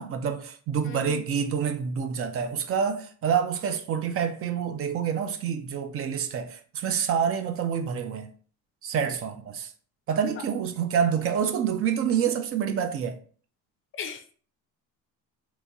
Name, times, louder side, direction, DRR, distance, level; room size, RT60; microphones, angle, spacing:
voice 1, 0.0-8.3 8.8-9.7 10.1-13.2, right 7 dB, 45° right, 0.4 m, -27 dB
voice 2, 0.8-1.2 14.0-14.3, left 7 dB, 40° left, 0.4 m, -37 dB
3.0 x 2.8 x 3.4 m
cardioid pair, 135°, 33 cm